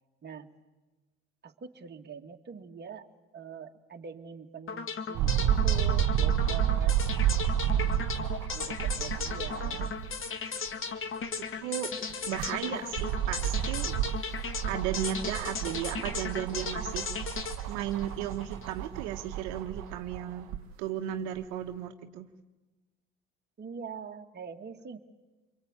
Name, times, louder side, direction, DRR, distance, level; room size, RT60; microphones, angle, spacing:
voice 1, 1.4-3.1 3.3-7.0 8.5-9.9 23.6-25.0, right 6 dB, 30° right, 3 dB, 2.2 m, -43 dB
sound 1, 4.7-18.8, left 5 dB, 40° left, 2.1 m, -36 dB
sound 2, 5.2-10.2 10.7-10.8 12.1-20.6 21.4-21.5, right 11 dB, 60° right, 1.1 m, -30 dB
voice 2, 11.6-11.9 12.3-13.9 14.7-17.1 17.7-20.5 20.8-22.3, right 11 dB, 75° right, 5 dB, 1.4 m, -35 dB
28.0 x 23.0 x 9.1 m, 1.2 s
hypercardioid pair, 80°, 33 cm